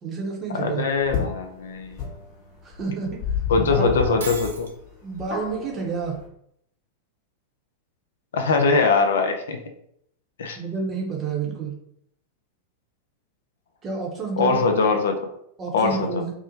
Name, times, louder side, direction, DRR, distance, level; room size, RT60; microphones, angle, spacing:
voice 1, 0.0-0.8 2.6-3.2 3.6-3.9 5.0-6.2 10.6-11.7 13.8-14.6 15.6-16.3, right 5 dB, 25° right, -1 dB, 0.7 m, -29 dB
voice 2, 0.5-2.0 3.5-4.7 8.3-9.6 10.4-10.6 14.4-15.2 15.7-16.2, left 4 dB, 60° left, 5 dB, 0.3 m, -22 dB
sound 1, 1.0-6.3, left 7 dB, 45° left, 0.9 m, -32 dB
Shatter, 4.2-4.8, right 4 dB, 65° right, 0.4 m, -35 dB
2.6 x 2.0 x 2.8 m, 0.71 s
figure-of-eight pair, 90°, 0 cm